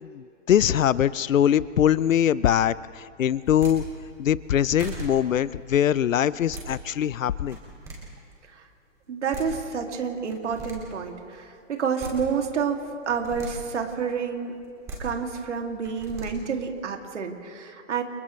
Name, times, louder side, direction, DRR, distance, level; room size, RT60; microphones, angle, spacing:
voice 1, 0.0-3.8 4.2-7.6, left 10 dB, 85° left, 19 dB, 0.7 m, -22 dB
sound 1, 3.4-3.7 4.4-4.5 4.8-5.0 6.2-6.7 7.4-7.9 9.0-9.1 9.3-9.5 10.3-10.7 11.7-12.1 13.0-13.5 14.6-15.0 15.8-16.3, right 3 dB, 10° right, 2.3 m, -38 dB
voice 2, 9.1-14.5 15.0-18.0, right 6 dB, 65° right, 3 dB, 2.7 m, -29 dB
29.5 x 29.0 x 3.3 m, 2.4 s
hypercardioid pair, 175°, 38 cm